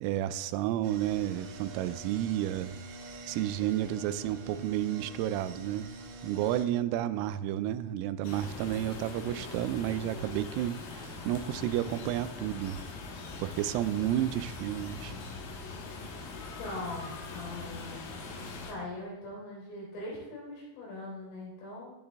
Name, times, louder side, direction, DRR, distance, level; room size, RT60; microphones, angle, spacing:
voice 1, 0.0-2.8 3.3-5.9 6.2-12.8 13.4-15.1, right 12 dB, 85° right, 13 dB, 3.1 m, -31 dB
sound 1, 0.8-6.7, right 2 dB, 65° right, 3.6 m, -46 dB
sound 2, 8.2-18.7, left 3 dB, 85° left, 2.0 m, -42 dB
voice 2, 16.6-18.0 18.6-21.9, left 2 dB, 70° left, -4 dB, 6.3 m, -41 dB
12.5 x 10.5 x 3.4 m, 1.0 s
omnidirectional pair, 6.0 m